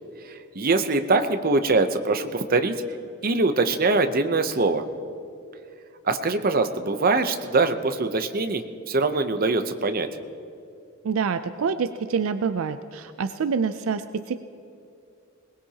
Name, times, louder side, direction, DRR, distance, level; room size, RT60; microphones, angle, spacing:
voice 1, 0.6-2.7 3.2-4.8 6.1-8.6 8.9-10.1, right 3 dB, 45° right, 8 dB, 0.7 m, -22 dB
voice 2, 11.0-14.4, right 5 dB, 75° right, 11 dB, 0.4 m, -26 dB
21.5 x 19.0 x 2.9 m, 2.6 s
head